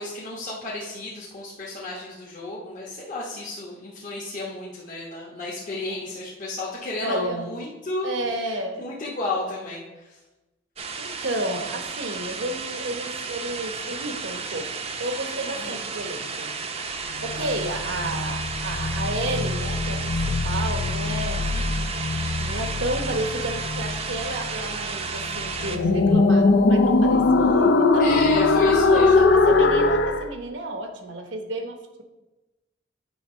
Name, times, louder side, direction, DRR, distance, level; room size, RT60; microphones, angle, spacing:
voice 1, 0.0-8.1 8.4-10.2 15.5-15.8 17.3-17.5 21.5-21.9 28.0-29.3, left 2 dB, 45° left, -6 dB, 1.2 m, -33 dB
voice 2, 7.0-7.5 8.0-8.8 11.0-16.6 17.2-21.5 22.4-28.1 28.9-32.0, right 1 dB, 75° right, 5 dB, 1.1 m, -31 dB
sound 1, 10.8-25.8, right 5 dB, 35° right, 0.6 m, -33 dB
sound 2, 17.0-30.3, left 3 dB, 65° left, 0.5 m, -22 dB
9.1 x 3.5 x 5.5 m, 1.1 s
head